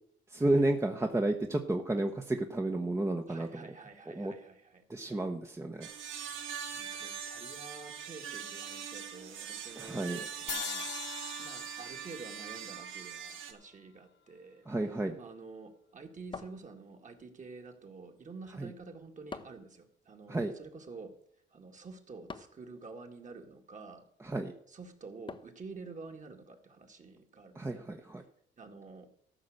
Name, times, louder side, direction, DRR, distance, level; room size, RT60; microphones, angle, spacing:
voice 1, 0.3-3.7 4.2-4.3 4.9-5.9 9.8-10.2 14.7-15.1 18.6-18.7 20.3-20.5 24.2-24.5 27.6-28.2, right 2 dB, 15° right, 4 dB, 1.0 m, -31 dB
voice 2, 3.3-5.2 6.6-10.9 11.4-14.7 15.2-21.1 21.5-24.0 24.7-27.8 28.6-29.1, right 4 dB, 40° right, 4 dB, 2.1 m, -49 dB
sound 1, 5.8-13.5, right 8 dB, 80° right, 1.4 m, -42 dB
sound 2, 10.5-13.8, left 10 dB, 70° left, 0.8 m, -43 dB
sound 3, 16.3-17.2 19.3-19.8 22.3-22.7 25.3-25.7, left 4 dB, 25° left, 0.8 m, -46 dB
14.0 x 5.9 x 6.6 m, 0.69 s
cardioid pair, 90°, 20 cm